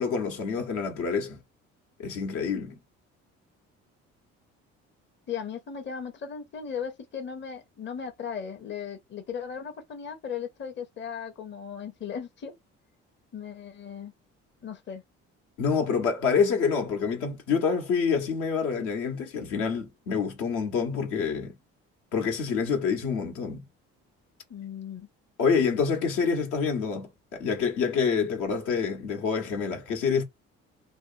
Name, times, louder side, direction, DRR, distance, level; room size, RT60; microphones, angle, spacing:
voice 1, 0.0-1.4 2.0-2.7 15.6-21.5 22.1-23.6 25.4-30.2, left 6 dB, 80° left, 1.1 m, -27 dB
voice 2, 5.3-12.6 13.3-14.1 14.6-15.0 24.5-25.1, left 7 dB, 40° left, 0.7 m, -37 dB
2.8 x 2.1 x 2.6 m
supercardioid pair, 70°, 30 cm